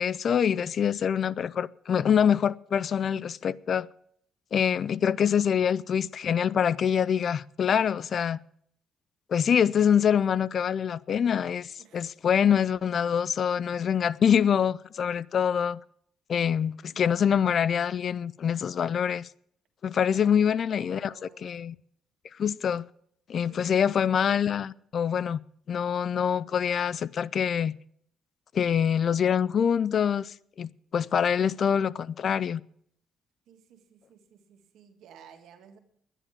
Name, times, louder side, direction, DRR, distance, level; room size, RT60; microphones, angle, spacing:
voice 1, 0.0-3.9 4.5-8.4 9.3-15.8 16.3-19.3 19.8-21.7 22.4-22.9 23.3-25.4 25.7-27.8 28.5-32.6, left 8 dB, 55° left, 0.4 m, -25 dB
voice 2, 20.1-21.6 23.5-23.8 33.5-35.8, right 7 dB, 80° right, 1.8 m, -54 dB
11.5 x 10.0 x 6.9 m
cardioid pair, 90°, 0 cm